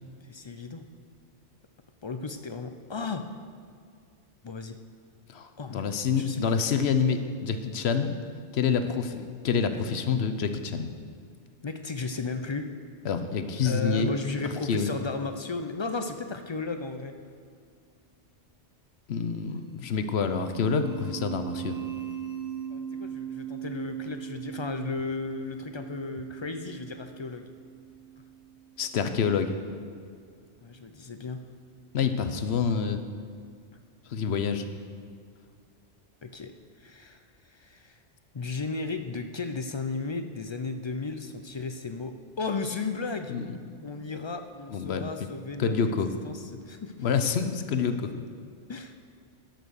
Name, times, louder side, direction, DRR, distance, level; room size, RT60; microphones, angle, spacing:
voice 1, 0.2-0.9 2.0-3.3 4.4-4.8 5.6-5.9 6.1-6.4 11.6-12.7 13.6-17.1 19.5-19.6 22.7-27.5 30.6-31.4 36.2-36.5 36.8-38.0 38.3-43.4 43.8-46.9 48.7-48.9, left 4 dB, 50° left, 7 dB, 0.3 m, -35 dB
voice 2, 5.3-8.1 8.5-10.9 13.0-14.1 14.7-14.9 19.1-21.8 28.8-29.5 31.9-33.0 34.1-34.7 43.3-43.5 44.7-45.3 45.6-46.1 47.0-48.2, left 6 dB, 65° left, 9 dB, 1.0 m, -27 dB
sound 1, 20.2-28.9, right 10 dB, 20° right, 0.6 m, -40 dB
12.0 x 6.0 x 6.4 m, 2.2 s
omnidirectional pair, 1.2 m